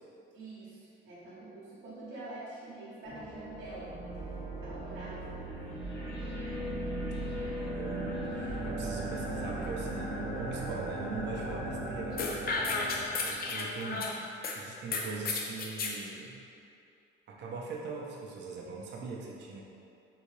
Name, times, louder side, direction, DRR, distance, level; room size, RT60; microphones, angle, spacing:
voice 1, 0.3-3.9 4.6-5.3, right 2 dB, 90° right, -8 dB, 0.8 m, -45 dB
sound 1, 3.0-13.6, right 1 dB, 85° left, 1.1 m, -37 dB
voice 2, 7.1-12.2 13.3-14.2 14.5-16.4 17.3-19.6, right 4 dB, 60° right, -3 dB, 0.5 m, -41 dB
sound 2, 12.2-14.6 14.9-16.0, left 3 dB, 50° left, 0.5 m, -33 dB
3.6 x 2.7 x 3.1 m, 2.6 s
cardioid pair, 90°, 20 cm